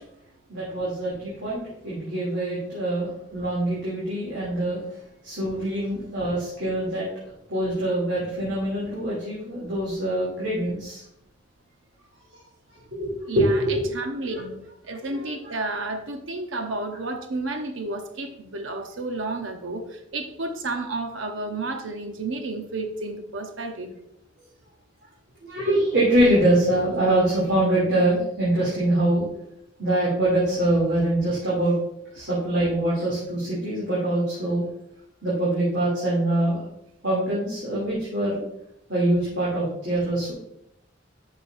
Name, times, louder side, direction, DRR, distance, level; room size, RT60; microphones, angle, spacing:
voice 1, 0.5-4.8 5.2-7.0 7.5-11.0 12.9-13.9 25.4-29.2 29.8-31.7 32.1-34.6 35.2-36.6 37.0-38.4 38.9-40.3, right 1 dB, 60° right, -8 dB, 2.9 m, -24 dB
voice 2, 13.3-13.6 13.9-14.6 14.9-23.9, right 2 dB, 85° right, 6 dB, 0.9 m, -31 dB
10.5 x 6.0 x 2.6 m, 0.78 s
head